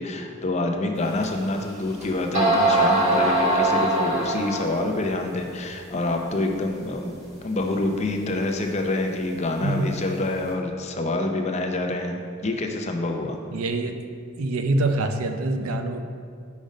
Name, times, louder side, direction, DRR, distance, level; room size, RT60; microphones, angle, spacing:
voice 1, 0.0-7.1 7.4-13.4, left 2 dB, 30° left, 3 dB, 0.5 m, -27 dB
sound 1, 1.2-1.3 2.0-2.1 2.3-4.8, right 2 dB, 35° right, 1.4 m, -21 dB
voice 2, 13.5-14.0 14.4-16.0, right 2 dB, 80° right, 6 dB, 0.5 m, -25 dB
5.2 x 5.1 x 5.2 m, 2.2 s
head